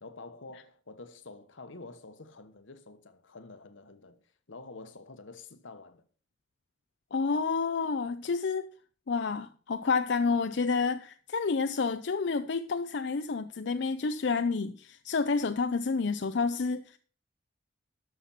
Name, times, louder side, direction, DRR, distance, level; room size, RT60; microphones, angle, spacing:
voice 1, 0.0-4.2 4.5-6.1, left 3 dB, 85° left, 1.2 m, -48 dB
voice 2, 7.1-8.7 9.1-17.0, left 4 dB, 65° left, 0.5 m, -29 dB
13.0 x 6.0 x 5.7 m
head